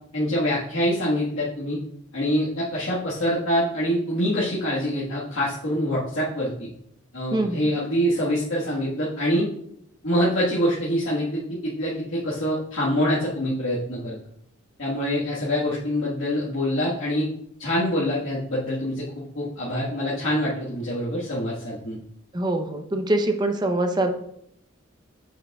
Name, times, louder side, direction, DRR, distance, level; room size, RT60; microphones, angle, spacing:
voice 1, 0.1-1.8 2.1-6.7 7.1-9.5 10.0-14.1 14.8-17.2 17.6-22.0, equal, 85° left, -8 dB, 1.5 m, -25 dB
voice 2, 7.3-7.6 22.3-24.1, right 1 dB, 20° right, 6 dB, 0.6 m, -24 dB
7.4 x 6.2 x 2.3 m, 0.71 s
head